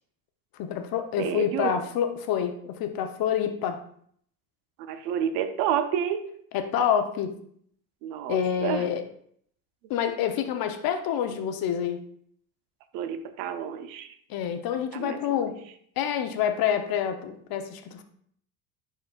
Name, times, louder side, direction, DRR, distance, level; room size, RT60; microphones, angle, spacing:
voice 1, 0.6-3.8 6.5-7.3 8.3-9.0 9.9-12.0 14.3-15.6 16.0-18.0, left 9 dB, 55° left, 7 dB, 1.0 m, -27 dB
voice 2, 1.2-1.8 4.8-6.3 8.0-8.9 12.9-14.1 14.9-15.5, right 9 dB, 75° right, 9 dB, 0.8 m, -30 dB
10.5 x 4.4 x 2.5 m, 0.64 s
supercardioid pair, 95°, 42 cm